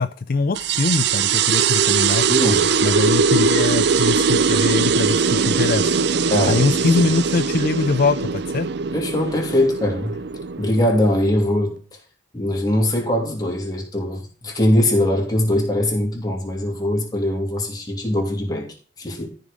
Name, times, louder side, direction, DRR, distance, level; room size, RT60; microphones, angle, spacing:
voice 1, 0.0-2.3 2.8-6.0 6.5-8.7, left 4 dB, 50° left, 11 dB, 0.4 m, -22 dB
sound 1, 0.5-11.6, right 5 dB, 60° right, 0.5 m, -20 dB
voice 2, 2.3-2.7 6.3-7.1 8.9-10.2 10.6-11.7 12.3-18.7 19.0-19.3, left 1 dB, 20° left, -1 dB, 2.7 m, -21 dB
13.5 x 5.3 x 5.0 m, 0.40 s
head